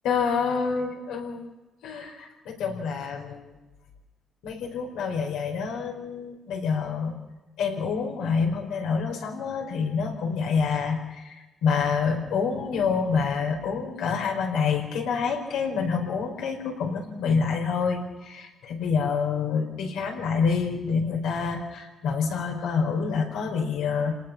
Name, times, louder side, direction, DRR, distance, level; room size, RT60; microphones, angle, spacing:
voice 1, 0.0-1.5 1.8-3.5 4.4-7.1 7.6-24.1, left 5 dB, 90° left, 2 dB, 4.9 m, -27 dB
29.5 x 19.0 x 6.0 m, 1.1 s
cardioid pair, 90°, 0 cm